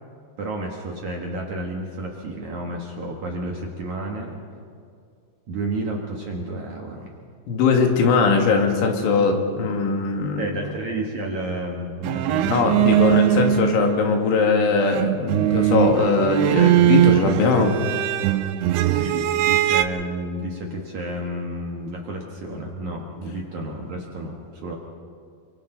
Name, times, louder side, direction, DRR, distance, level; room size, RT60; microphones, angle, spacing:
voice 1, 0.4-4.4 5.5-7.2 10.4-13.4 18.6-24.8, right 1 dB, 55° right, -1 dB, 2.2 m, -31 dB
voice 2, 7.5-10.5 12.4-17.7, left 4 dB, 80° left, 2 dB, 4.5 m, -20 dB
sound 1, 12.0-14.5 14.8-19.8, right 12 dB, 85° right, 2.3 m, -20 dB
29.5 x 24.0 x 4.0 m, 2.3 s
omnidirectional pair, 5.4 m